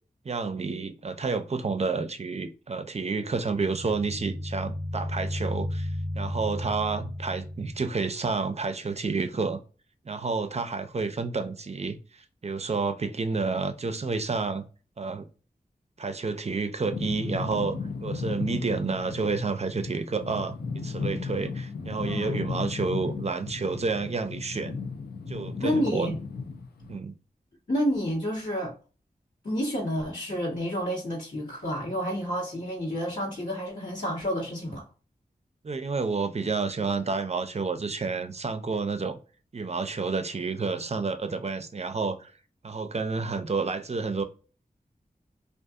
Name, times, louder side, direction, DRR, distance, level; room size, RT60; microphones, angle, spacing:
voice 1, 0.2-9.6 10.0-14.6 15.0-15.3 16.0-20.6 20.8-24.8 25.3-26.1 26.9-27.1 35.6-39.2 39.5-42.3 42.6-44.2, right 4 dB, 45° right, 0.5 m, -30 dB
sound 1, 3.3-8.0, left 1 dB, 30° left, 0.7 m, -34 dB
sound 2, 16.9-27.0, left 4 dB, 80° left, 0.5 m, -35 dB
voice 2, 22.0-22.4 25.6-26.2 27.7-28.7 29.4-34.8, equal, 60° left, 1.2 m, -29 dB
2.6 x 2.4 x 2.3 m
cardioid pair, 40°, 16 cm